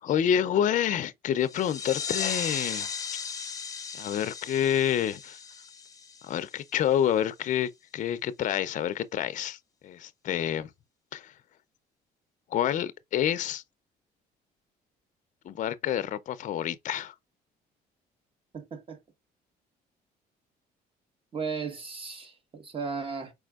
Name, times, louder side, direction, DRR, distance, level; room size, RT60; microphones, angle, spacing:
voice 1, 0.0-2.9 3.9-5.4 6.2-10.7 11.1-11.3 12.5-13.6 15.4-17.1, left 10 dB, 50° left, 0.5 m, -28 dB
sound 1, 1.4-6.8, left 6 dB, 20° left, 0.8 m, -36 dB
voice 2, 18.5-19.0 21.3-23.3, right 5 dB, 30° right, 1.3 m, -35 dB
4.7 x 4.3 x 2.3 m
cardioid pair, 110°, 17 cm